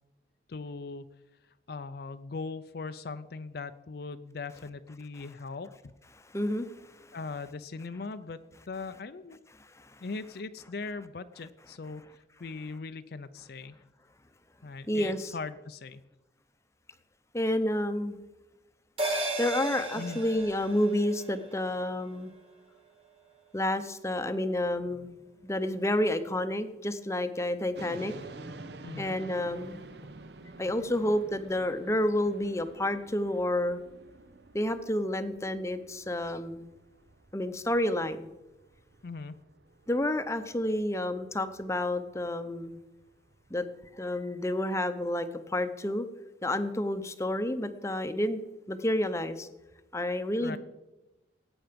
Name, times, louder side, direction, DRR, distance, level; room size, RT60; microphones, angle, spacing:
voice 1, 0.5-1.1 1.7-5.9 7.1-8.4 8.7-9.4 10.0-12.1 12.4-13.8 14.6-16.0 20.0-20.2 28.8-29.2 39.0-39.4 50.4-50.6, left 4 dB, 55° left, 10 dB, 0.5 m, -39 dB
voice 2, 6.3-7.4 8.7-9.0 9.8-11.1 11.6-11.9 14.9-15.3 17.3-18.2 19.4-22.3 23.5-25.1 25.4-28.1 29.0-29.9 30.6-33.8 34.5-36.7 37.3-38.3 39.9-42.8 43.5-43.6 44.0-46.1 46.4-48.4 48.7-49.5 49.9-50.6, left 1 dB, 15° left, 10 dB, 0.7 m, -30 dB
sound 1, 19.0-23.7 24.0-24.1, right 2 dB, 30° right, 2.2 m, -37 dB
sound 2, 27.7-44.0, right 2 dB, 65° right, 0.8 m, -50 dB
17.5 x 8.9 x 5.2 m, 1.0 s
head